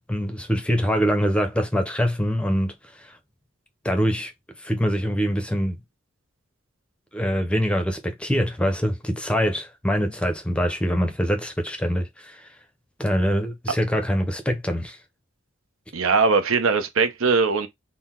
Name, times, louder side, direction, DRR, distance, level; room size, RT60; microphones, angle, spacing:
voice 1, 0.0-2.7 3.8-4.3 4.6-5.8 7.1-12.5 13.0-15.0, equal, 5° left, 0.6 m, -24 dB
voice 2, 15.9-17.7, right 4 dB, 85° right, 0.7 m, -20 dB
3.8 x 2.1 x 4.3 m
head